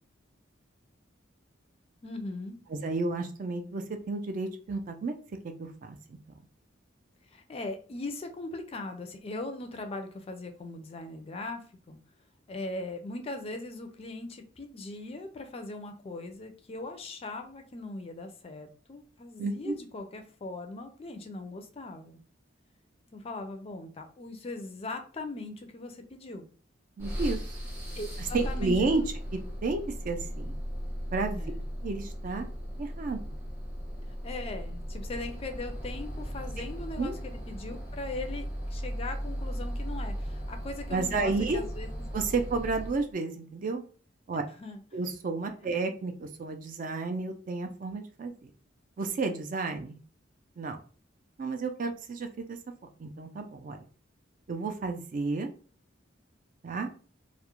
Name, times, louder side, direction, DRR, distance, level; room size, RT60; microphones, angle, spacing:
voice 1, 2.0-2.6 7.3-11.6 11.9-12.0 12.5-22.2 23.1-26.5 28.0-29.0 31.3-31.6 34.2-42.1 44.6-44.8, left 2 dB, 30° left, 6 dB, 0.4 m, -40 dB
voice 2, 2.7-5.2 5.6-6.2 19.4-19.8 27.0-27.6 28.2-29.0 29.3-30.6 31.1-31.4 31.8-32.5 32.8-33.2 37.0-37.2 40.9-41.6 42.1-43.8 44.3-44.4 44.9-48.5 49.0-50.0 50.6-50.8 51.4-52.6 53.0-53.8 54.5-55.5 56.6-56.9, right 3 dB, 45° right, 6 dB, 0.4 m, -31 dB
sound 1, 27.0-43.1, equal, 10° right, 0.7 m, -37 dB
2.3 x 2.0 x 2.9 m, 0.40 s
head